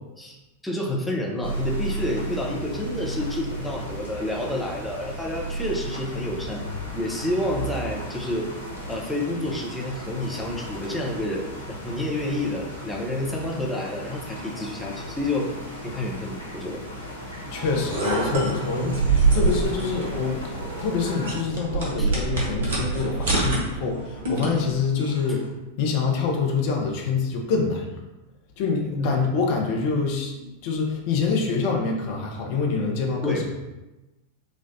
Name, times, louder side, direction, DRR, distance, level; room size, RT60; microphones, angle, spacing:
voice 1, 0.6-6.6 6.9-8.5 8.9-11.5 11.8-15.5 15.8-16.8 19.4-19.5 22.0-22.1 28.9-29.2 33.2-33.5, left 1 dB, 5° left, -2 dB, 0.6 m, -29 dB
sound 1, 1.4-21.3, right 1 dB, 80° left, 0.9 m, -35 dB
voice 2, 17.5-25.4 25.8-27.9 28.6-33.6, left 5 dB, 45° left, 0 dB, 0.7 m, -26 dB
sound 2, 17.5-25.5, right 1 dB, 80° right, 0.4 m, -44 dB
sound 3, 17.6-24.7, right 3 dB, 60° right, 0.8 m, -26 dB
4.2 x 2.3 x 2.6 m, 1.1 s
figure-of-eight pair, 90°, 0 cm